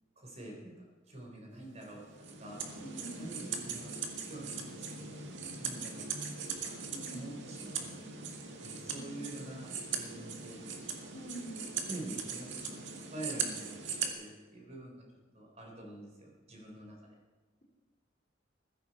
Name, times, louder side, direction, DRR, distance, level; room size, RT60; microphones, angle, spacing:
voice 1, 0.2-2.1 2.4-2.6 3.2-5.2 5.6-6.1 6.6-6.8 7.1-8.1 8.6-11.0 11.8-15.0 15.3-17.1, right 1 dB, 35° right, 0 dB, 4.3 m, -47 dB
sound 1, 1.8-14.1, right 5 dB, 75° right, 1.9 m, -40 dB
voice 2, 2.8-3.3 6.9-7.3 8.9-9.2 11.1-11.7, right 1 dB, 40° left, -1 dB, 3.8 m, -45 dB
15.5 x 14.5 x 4.5 m, 1.4 s
head